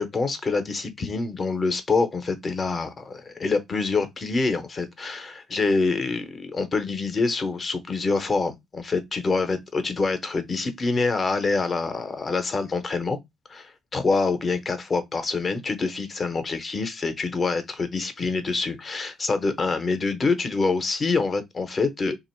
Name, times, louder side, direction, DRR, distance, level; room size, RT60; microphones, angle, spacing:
voice 1, 0.0-13.2 13.5-22.2, left 4 dB, 35° left, 0.7 m, -26 dB
2.9 x 2.4 x 4.3 m
cardioid pair, 115°, 0 cm